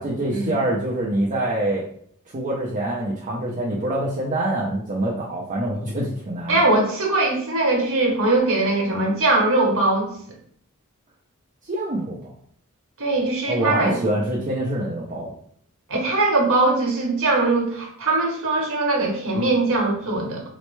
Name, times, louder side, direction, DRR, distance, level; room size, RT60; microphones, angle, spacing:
voice 1, 0.0-1.9 2.3-6.6 11.6-12.3 13.5-15.3, right 1 dB, 35° right, -5 dB, 0.6 m, -25 dB
voice 2, 6.5-10.1 13.0-14.0 15.9-20.4, right 2 dB, 65° right, 0 dB, 1.0 m, -21 dB
4.3 x 2.0 x 3.1 m, 0.63 s
head